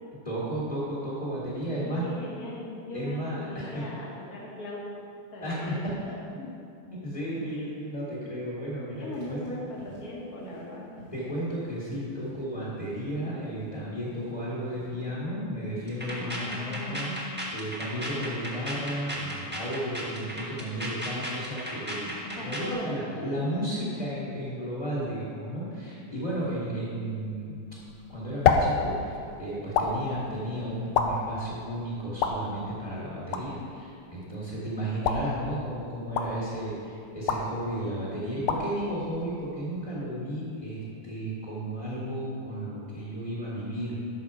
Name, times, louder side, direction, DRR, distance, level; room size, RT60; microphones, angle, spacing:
voice 1, 0.2-2.0 2.9-3.8 5.4-6.1 6.9-9.4 11.1-17.1 17.5-22.1 22.4-27.6 28.1-44.0, equal, 20° left, -7 dB, 1.8 m, -33 dB
voice 2, 1.7-4.8 5.3-5.8 6.4-6.5 7.4-7.7 8.8-11.0 16.1-17.2 22.2-22.9 23.3-23.5 23.8-23.9 25.8-25.9, left 1 dB, 45° left, -4 dB, 2.1 m, -39 dB
sound 1, 9.0-14.9, right 2 dB, 70° right, 3.6 m, -52 dB
sound 2, 15.9-22.7, equal, 5° right, 1.2 m, -35 dB
sound 3, 27.8-40.0, left 5 dB, 85° left, 1.6 m, -31 dB
11.5 x 6.4 x 4.8 m, 2.5 s
omnidirectional pair, 2.4 m